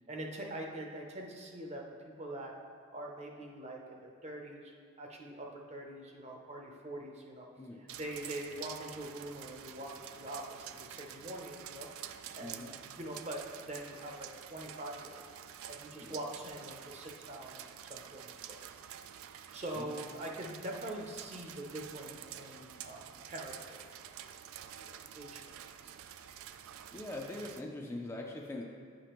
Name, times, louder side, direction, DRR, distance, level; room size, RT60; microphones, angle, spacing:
voice 1, 0.1-2.5 2.9-4.7 5.0-7.5 7.8-11.9 12.3-15.3 15.7-18.6 19.5-24.1 24.8-25.4 25.8-25.9, right 1 dB, 30° right, 0 dB, 0.7 m, -44 dB
sound 1, 7.9-27.6, right 10 dB, 85° right, 0.3 m, -49 dB
voice 2, 12.4-12.7 16.0-16.2 19.7-19.9 26.9-28.6, left 2 dB, 15° left, -1 dB, 0.4 m, -42 dB
9.1 x 5.0 x 3.0 m, 2.1 s
head